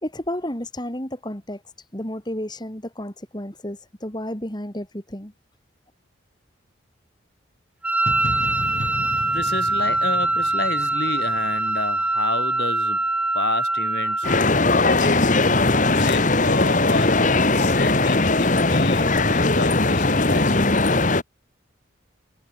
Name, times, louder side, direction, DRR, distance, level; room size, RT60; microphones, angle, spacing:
voice 1, 0.0-1.6 1.9-5.3, left 1 dB, 20° left, 3.0 m, -31 dB
Wind instrument woodwind instrument, 7.8-14.4, right 2 dB, 5° right, 0.7 m, -23 dB
sound 1, 8.1-11.9, left 1 dB, 70° left, 3.7 m, -34 dB
voice 2, 9.3-13.0 13.3-14.3 14.8-15.4 15.9-20.6, left 2 dB, 55° left, 3.2 m, -30 dB
sound 2, 14.2-21.2, left 2 dB, 40° left, 1.6 m, -19 dB
head